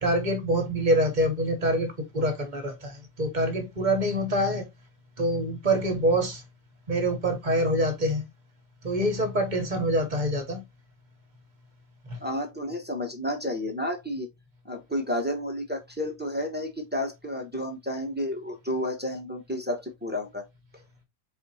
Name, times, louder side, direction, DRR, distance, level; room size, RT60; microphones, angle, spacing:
voice 1, 0.0-4.7 5.2-6.4 6.9-8.3 8.8-10.6 12.1-12.2, right 1 dB, 35° right, 1.0 m, -25 dB
voice 2, 12.2-14.3 14.6-20.4, left 1 dB, 10° right, 0.7 m, -31 dB
4.1 x 2.7 x 4.1 m
omnidirectional pair, 1.5 m